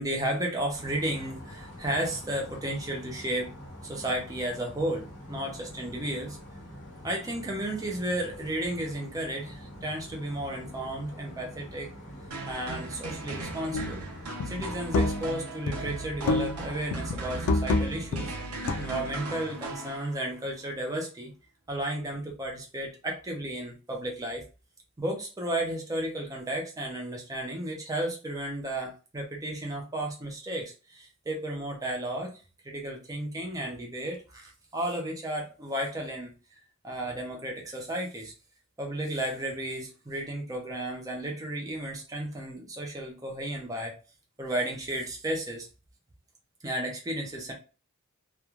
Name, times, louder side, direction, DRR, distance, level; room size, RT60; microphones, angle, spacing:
voice 1, 0.0-3.5 3.8-6.4 7.0-11.9 12.5-14.0 14.5-18.3 18.8-21.3 21.7-24.4 25.0-32.3 32.6-36.3 36.8-38.3 38.8-43.9 44.4-45.7 46.6-47.5, right 1 dB, 15° right, 0 dB, 0.4 m, -33 dB
sound 1, 0.7-14.3, equal, 55° left, 1.3 m, -45 dB
sound 2, 12.3-20.4, right 2 dB, 85° right, 0.8 m, -38 dB
sound 3, 13.7-14.0 14.4-15.4 15.7-16.7 16.9-19.1, left 2 dB, 80° left, 0.4 m, -29 dB
3.0 x 2.2 x 2.3 m, 0.33 s
head